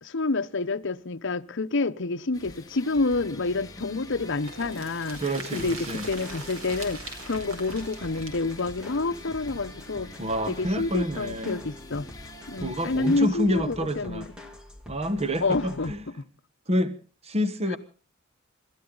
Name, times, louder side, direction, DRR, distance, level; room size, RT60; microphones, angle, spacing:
voice 1, 0.0-5.2 5.5-10.1 10.5-12.1 12.5-14.2 15.4-15.9, left 3 dB, 65° left, 0.9 m, -28 dB
sound 1, 2.3-13.2, left 2 dB, 20° left, 2.5 m, -46 dB
sound 2, 4.4-10.1 10.4-10.5 10.8-10.9, right 3 dB, 80° right, 4.6 m, -42 dB
voice 2, 5.2-6.1 10.2-11.7 12.6-14.3 14.9-16.0 16.7-17.0 17.2-17.8, equal, 30° right, 1.2 m, -28 dB
sound 3, 5.5-15.9, left 1 dB, 5° right, 2.3 m, -46 dB
26.5 x 13.5 x 3.9 m
head